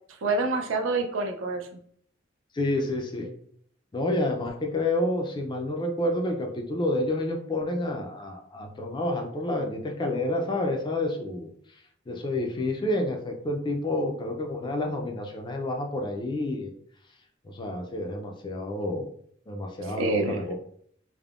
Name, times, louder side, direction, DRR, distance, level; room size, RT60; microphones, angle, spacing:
voice 1, 0.2-1.8 20.0-20.4, right 3 dB, 80° right, 4 dB, 0.4 m, -27 dB
voice 2, 2.5-3.3 3.9-11.5 12.1-16.7 17.4-19.1 19.5-20.5, left 1 dB, 25° left, 2 dB, 0.4 m, -29 dB
3.4 x 2.1 x 2.4 m, 0.64 s
head